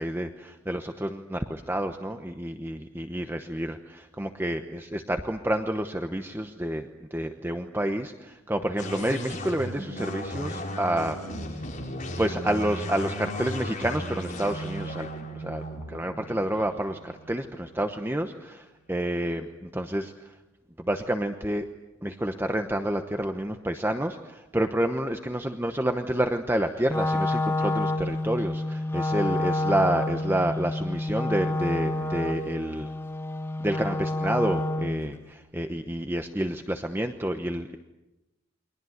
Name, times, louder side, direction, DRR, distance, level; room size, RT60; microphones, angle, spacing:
voice 1, 0.0-11.2 12.2-15.1 15.3-15.6 15.9-20.3 20.8-21.7 22.0-32.9 33.6-37.8, right 1 dB, 10° right, 6 dB, 1.0 m, -29 dB
sound 1, 8.8-18.2, equal, 40° left, 5.2 m, -36 dB
Wind instrument woodwind instrument, 26.8-35.0, left 2 dB, 10° left, 2.3 m, -28 dB
29.5 x 23.0 x 8.0 m, 1.0 s
head